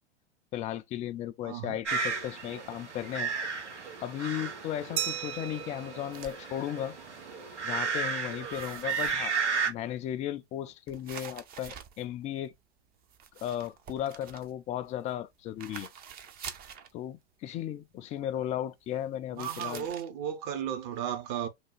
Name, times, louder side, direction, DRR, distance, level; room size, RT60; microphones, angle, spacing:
voice 1, 0.5-3.3 4.0-6.9 7.6-9.4 9.7-12.5 13.4-15.9 16.9-19.9, left 11 dB, 20° left, 0.4 m, -35 dB
voice 2, 1.4-1.8 19.4-21.5, right 9 dB, 45° right, 1.1 m, -34 dB
sound 1, 1.9-9.7, right 5 dB, 85° right, 1.5 m, -34 dB
Glass, 5.0-7.4, right 12 dB, 70° right, 0.5 m, -38 dB
sound 2, 6.1-6.4 7.1-7.3 7.6-8.1 8.5-9.5 10.9-12.6 13.0-15.2 15.6-16.9 19.4-20.1, right 8 dB, 25° right, 0.7 m, -46 dB
3.5 x 2.3 x 4.4 m
hypercardioid pair, 100°, 34 cm